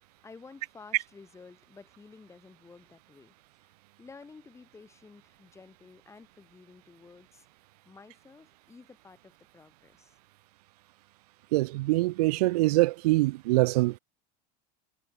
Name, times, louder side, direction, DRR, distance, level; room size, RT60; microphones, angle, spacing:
voice 1, 0.2-3.3 3.6-7.6 7.8-10.1, left 4 dB, 15° left, 2.7 m, -52 dB
voice 2, 11.5-14.0, right 20 dB, 80° right, 0.5 m, -24 dB
supercardioid pair, 125°, 20 cm